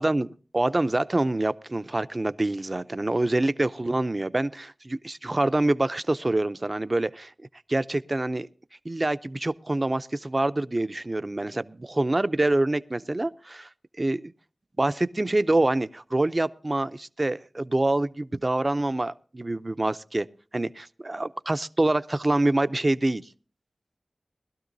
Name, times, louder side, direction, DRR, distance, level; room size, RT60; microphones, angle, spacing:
voice 1, 0.5-7.3 7.7-8.5 8.8-13.7 14.0-14.3 14.8-20.3 20.5-23.3, right 2 dB, 35° right, 13 dB, 0.5 m, -26 dB
21.0 x 12.5 x 2.6 m, 0.38 s
wide cardioid pair, 80°, 0 cm